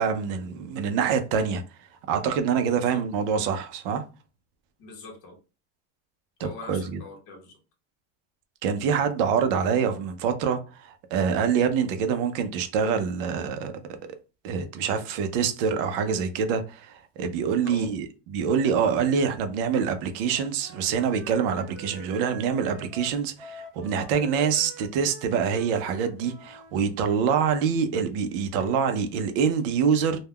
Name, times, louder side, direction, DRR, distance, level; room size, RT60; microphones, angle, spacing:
voice 1, 0.0-1.6 2.1-4.0 6.4-7.0 8.6-13.7 14.4-30.2, right 6 dB, 50° right, 0.5 m, -25 dB
voice 2, 4.8-5.4 6.4-7.6 17.6-17.9, left 3 dB, 35° left, 0.8 m, -42 dB
Wind instrument woodwind instrument, 20.1-26.7, right 2 dB, 25° right, 1.0 m, -45 dB
2.3 x 2.2 x 3.4 m
supercardioid pair, 170°, 37 cm